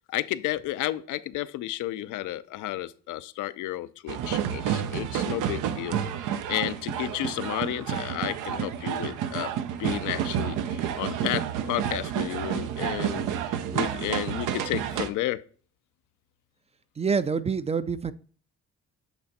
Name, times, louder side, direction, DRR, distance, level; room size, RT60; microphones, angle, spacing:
voice 1, 0.1-9.5 9.8-15.4, left 15 dB, 85° left, 0.5 m, -32 dB
sound 1, 4.1-15.1, right 9 dB, 90° right, 0.6 m, -30 dB
voice 2, 17.0-18.1, right 5 dB, 20° right, 0.3 m, -26 dB
8.2 x 3.4 x 4.0 m
cardioid pair, 90°, 30 cm